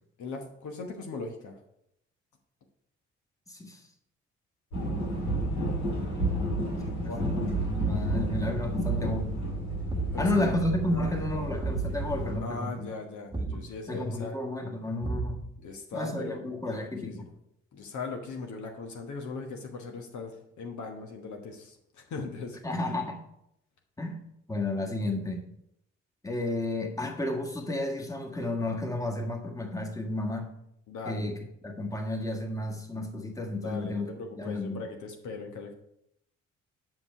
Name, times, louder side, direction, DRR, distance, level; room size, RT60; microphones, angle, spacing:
voice 1, 0.2-1.5 6.5-7.2 10.1-10.5 10.8-11.1 12.4-14.4 15.6-17.3 17.7-22.6 30.9-31.3 33.6-35.7, left 4 dB, 55° left, 3 dB, 1.2 m, -39 dB
voice 2, 3.5-3.8 6.9-9.3 10.1-12.9 13.4-13.6 13.9-15.4 15.9-17.2 22.6-23.2 24.0-24.2 24.5-25.4 26.2-30.5 31.1-31.4 31.6-34.1 34.4-34.8, left 1 dB, 10° left, 2 dB, 1.6 m, -32 dB
sound 1, 4.7-12.4, right 1 dB, 80° left, 2.0 m, -31 dB
Thump thud, 8.2-8.6 9.9-10.2 11.6-11.9 13.3-13.7 15.0-15.6, right 3 dB, 10° right, 1.2 m, -34 dB
7.7 x 6.0 x 4.6 m, 0.78 s
figure-of-eight pair, 45°, 35 cm